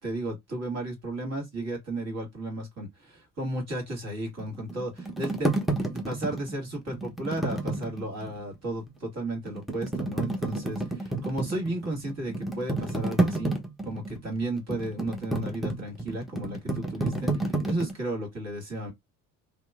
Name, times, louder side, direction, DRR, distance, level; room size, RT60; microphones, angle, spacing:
voice 1, 0.0-5.5 5.8-13.6 13.9-18.9, right 1 dB, 40° right, 1.8 m, -34 dB
sound 1, 4.4-8.4 8.9-9.0 9.5-17.9, right 2 dB, ahead, 0.8 m, -30 dB
2.9 x 2.2 x 2.4 m
hypercardioid pair, 60°, 41 cm